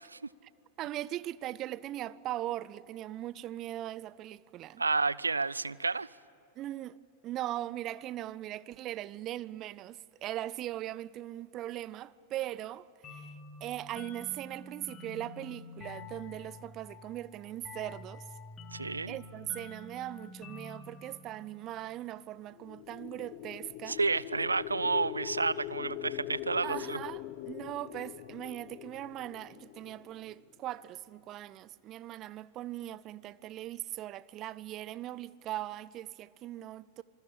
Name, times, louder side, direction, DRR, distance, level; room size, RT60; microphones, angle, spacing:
voice 1, 0.8-4.8 6.6-7.0 7.2-13.3 13.6-18.3 19.1-24.0 26.6-37.0, right 14 dB, 35° right, 0.6 m, -40 dB
voice 2, 4.8-6.1 18.7-19.2 23.9-27.0, right 4 dB, 80° right, 0.5 m, -30 dB
sound 1, 13.0-22.4, left 3 dB, 25° left, 3.4 m, -48 dB
sound 2, 22.5-30.6, left 15 dB, 45° left, 1.2 m, -42 dB
27.5 x 21.0 x 8.7 m
figure-of-eight pair, 90°, 0 cm